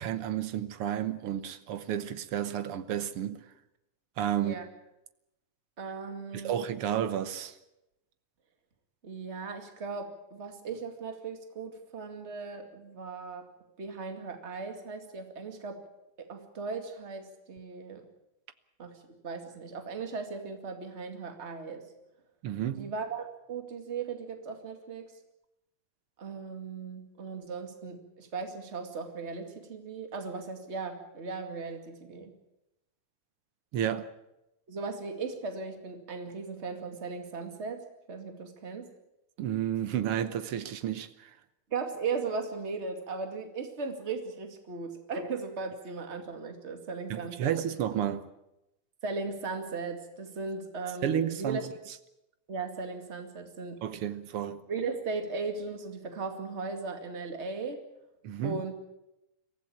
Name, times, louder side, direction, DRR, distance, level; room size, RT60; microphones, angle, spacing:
voice 1, 0.0-3.4 4.2-4.6 6.3-7.5 22.4-22.9 33.7-34.1 39.4-41.3 47.1-48.3 51.0-51.7 53.8-54.6 58.2-58.6, right 10 dB, 65° right, 1.6 m, -31 dB
voice 2, 5.8-6.5 9.0-13.5 13.8-15.8 16.2-18.0 18.8-21.9 22.8-25.1 26.2-32.3 34.7-38.9 41.7-47.5 49.0-51.6 52.5-53.8 54.7-57.8 58.4-58.7, right 4 dB, 25° right, 2.2 m, -37 dB
23.5 x 15.5 x 8.7 m
omnidirectional pair, 3.5 m